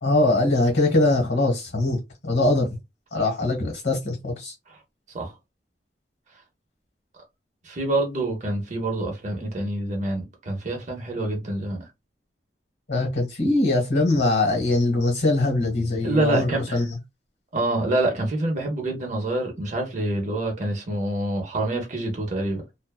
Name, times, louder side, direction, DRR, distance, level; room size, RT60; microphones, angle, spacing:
voice 1, 0.0-2.7 3.1-4.5 12.9-16.8, left 2 dB, 80° left, 1.4 m, -22 dB
voice 2, 7.6-11.8 16.0-16.8 17.5-22.6, right 2 dB, 45° right, 0.7 m, -26 dB
2.5 x 2.2 x 2.3 m
head